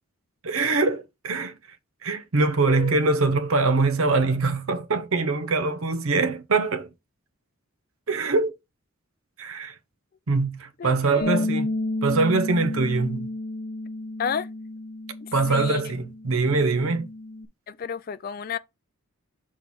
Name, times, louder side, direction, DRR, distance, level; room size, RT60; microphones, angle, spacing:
voice 1, 0.4-1.5 2.0-6.9 8.1-8.5 9.4-9.7 10.3-11.7 12.0-13.3 15.3-17.1, right 3 dB, 75° right, 0.8 m, -23 dB
voice 2, 2.7-3.0 10.8-11.5 14.2-14.5 15.2-15.8 17.7-18.6, left 6 dB, 40° left, 0.3 m, -31 dB
Bass guitar, 11.2-17.5, left 2 dB, 65° left, 0.7 m, -32 dB
6.0 x 4.4 x 3.6 m
head